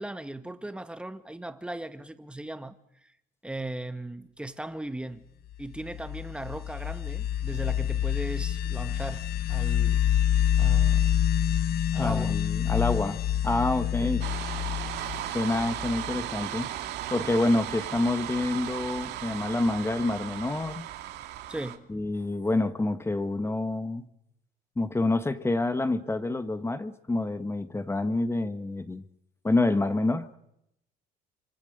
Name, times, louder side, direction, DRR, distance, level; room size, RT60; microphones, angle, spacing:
voice 1, 0.0-2.8 3.0-3.1 3.4-5.2 5.6-10.0 10.6-11.2 11.9-12.4 14.0-14.1 21.5-21.9, right 1 dB, 5° right, 1.8 m, -38 dB
sound 1, 5.7-16.3, left 10 dB, 65° left, 0.9 m, -27 dB
voice 2, 11.9-14.2 15.3-16.7 17.1-20.9 21.9-24.1 24.8-29.0 29.4-30.4, left 2 dB, 15° left, 1.5 m, -27 dB
sound 2, 14.2-21.8, right 13 dB, 80° right, 2.2 m, -36 dB
27.0 x 25.5 x 6.7 m
cardioid pair, 110°, 17 cm